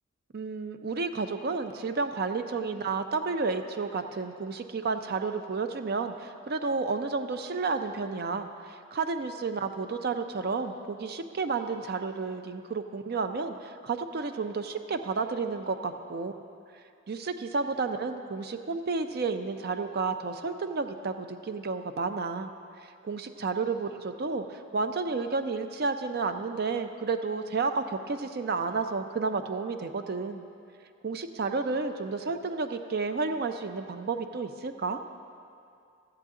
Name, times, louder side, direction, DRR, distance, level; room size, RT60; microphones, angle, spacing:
voice 1, 0.3-16.3 17.1-22.5 23.0-30.4 31.0-35.0, right 4 dB, 45° right, 8 dB, 0.4 m, -31 dB
14.5 x 7.8 x 3.7 m, 2.4 s
head